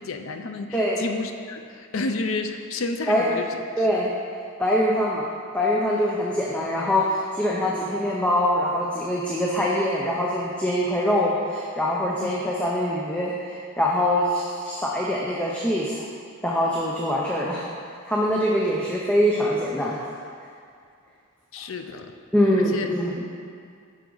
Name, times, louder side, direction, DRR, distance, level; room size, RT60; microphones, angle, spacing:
voice 1, 0.0-3.9 12.2-12.3 21.5-22.1 22.6-22.9, left 3 dB, 70° left, 6 dB, 0.6 m, -31 dB
voice 2, 0.7-1.0 3.1-3.4 3.8-4.1 4.6-5.3 5.5-16.1 16.4-17.7 18.1-20.1 22.3-23.3, equal, 5° left, -4 dB, 0.6 m, -23 dB
9.3 x 6.1 x 4.0 m, 2.2 s
head